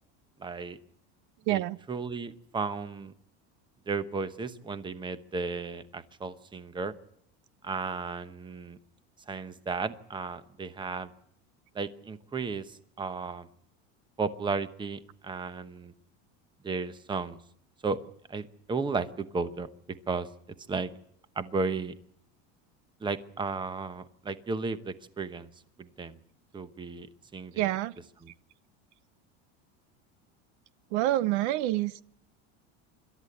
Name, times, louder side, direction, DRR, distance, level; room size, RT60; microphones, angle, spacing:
voice 1, 0.4-0.8 1.5-1.6 1.9-3.1 3.9-6.9 7.6-8.8 9.3-11.1 11.7-13.5 14.2-15.9 16.6-17.4 17.8-18.0 18.3-19.7 20.1-20.3 20.7-20.9 21.4-21.9 23.0-25.5 25.8-26.2 26.5-27.1 27.3-27.7 28.2-28.3, right 4 dB, 15° right, 0.9 m, -34 dB
voice 2, 1.5-1.8 27.6-27.9 30.9-32.0, right 15 dB, 75° right, 0.8 m, -27 dB
26.5 x 13.0 x 7.9 m
cardioid pair, 145°, 34 cm